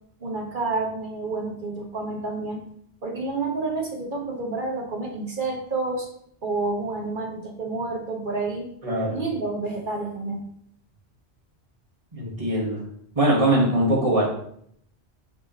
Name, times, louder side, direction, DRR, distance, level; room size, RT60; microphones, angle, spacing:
voice 1, 0.2-2.6 3.0-6.1 6.4-8.7 9.1-10.4, right 3 dB, 50° right, 0 dB, 1.5 m, -29 dB
voice 2, 8.8-9.2 12.1-12.8 13.2-14.3, right 1 dB, 30° right, -3 dB, 1.8 m, -21 dB
7.5 x 3.6 x 4.1 m, 0.66 s
omnidirectional pair, 1.1 m